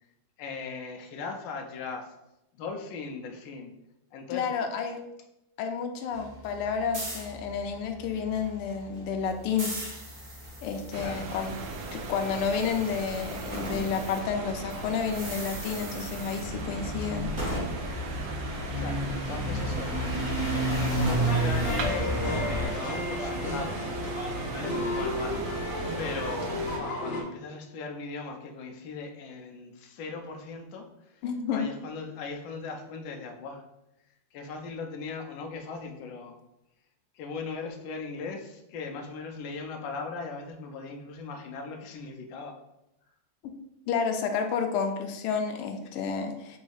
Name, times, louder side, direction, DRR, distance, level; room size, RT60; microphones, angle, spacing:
voice 1, 0.4-2.1 2.5-3.7 4.1-4.5 10.9-11.3 18.8-20.0 20.5-25.6 26.0-31.2 31.5-33.6 34.3-36.4 37.1-42.5, left 4 dB, 70° left, 3 dB, 1.3 m, -39 dB
voice 2, 4.3-5.0 5.6-9.7 10.6-11.5 11.9-17.3 31.2-31.7 43.9-46.6, left 6 dB, 85° left, 5 dB, 1.5 m, -30 dB
sound 1, 6.1-14.2 14.4-22.7, right 1 dB, 30° right, 0.9 m, -33 dB
sound 2, 10.9-26.8, right 3 dB, 80° right, 0.8 m, -37 dB
sound 3, 21.3-27.2, left 1 dB, 50° left, 0.8 m, -33 dB
4.1 x 2.7 x 4.7 m, 0.89 s
omnidirectional pair, 2.4 m